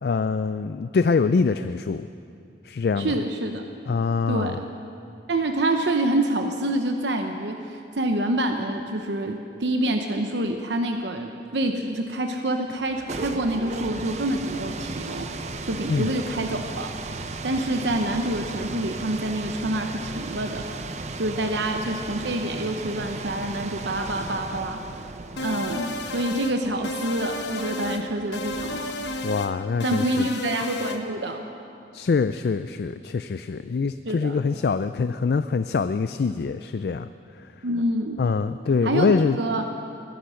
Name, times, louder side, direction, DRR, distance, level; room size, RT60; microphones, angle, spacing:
voice 1, 0.0-2.1 2.6-3.1 3.9-4.6 15.9-16.1 29.2-30.3 31.9-37.1 38.2-39.4, left 4 dB, 60° left, 11 dB, 0.3 m, -24 dB
voice 2, 3.0-3.6 4.3-4.7 5.3-15.3 15.6-16.9 17.4-20.6 21.2-24.8 25.4-28.9 29.8-31.4 34.1-34.4 37.6-38.2 38.8-39.7, right 1 dB, 80° right, 5 dB, 0.9 m, -27 dB
sound 1, 12.8-29.5, right 3 dB, 40° right, 0.6 m, -36 dB
sound 2, 25.4-26.6 26.8-28.0 28.3-29.5 29.8-31.0, left 2 dB, 75° left, 1.0 m, -32 dB
21.5 x 10.5 x 6.4 m, 2.5 s
head